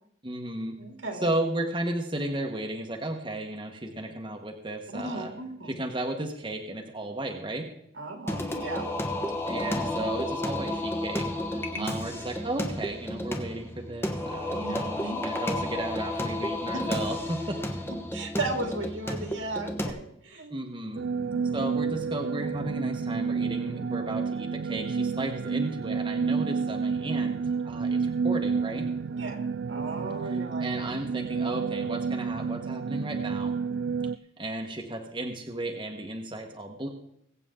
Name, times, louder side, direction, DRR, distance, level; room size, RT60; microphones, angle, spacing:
voice 1, 0.2-0.7 1.2-5.3 5.7-7.7 9.5-11.2 11.5-17.6 20.5-21.0 21.5-27.3 27.6-28.9 30.2-33.5 34.4-36.9, right 1 dB, 25° right, 2 dB, 1.2 m, -34 dB
voice 2, 0.8-1.3 4.9-5.7 8.0-8.9 11.5-11.9 14.5-15.2 17.9-20.5 21.1-21.6 29.1-30.6, right 2 dB, 85° right, 3 dB, 2.7 m, -36 dB
Singing, 8.3-19.9, left 1 dB, 10° left, 1.1 m, -32 dB
sound 1, 21.0-34.2, right 5 dB, 70° right, 0.4 m, -30 dB
21.0 x 8.4 x 3.7 m, 0.73 s
head